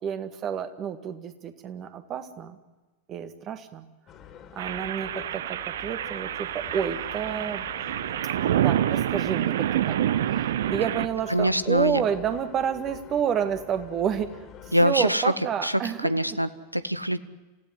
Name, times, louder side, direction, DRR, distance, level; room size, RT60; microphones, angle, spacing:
voice 1, 0.0-2.6 3.1-3.8 4.5-7.7 8.6-14.4 14.7-16.1, right 8 dB, 30° right, 10 dB, 1.9 m, -30 dB
sound 1, 4.1-14.9, left 9 dB, 30° left, 2.7 m, -46 dB
sound 2, 4.6-11.1, right 11 dB, 60° right, 0.8 m, -27 dB
voice 2, 11.3-12.0 14.7-15.3 15.6-17.2, equal, 90° right, 16 dB, 0.9 m, -24 dB
28.0 x 16.0 x 9.5 m, 1.2 s
figure-of-eight pair, 90°, 0 cm